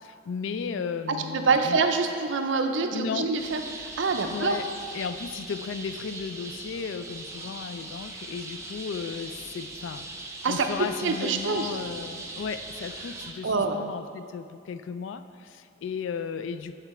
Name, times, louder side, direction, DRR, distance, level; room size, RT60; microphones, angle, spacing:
voice 1, 0.0-1.8 2.9-3.3 4.3-4.7 4.9-10.1 10.5-16.8, left 6 dB, 75° left, 11 dB, 0.3 m, -35 dB
voice 2, 1.1-4.6 10.4-11.8 13.4-13.8, right 4 dB, 70° right, 6 dB, 0.5 m, -26 dB
sound 1, 3.4-13.3, right 2 dB, 15° right, 0.6 m, -40 dB
8.1 x 4.5 x 4.2 m, 2.3 s
head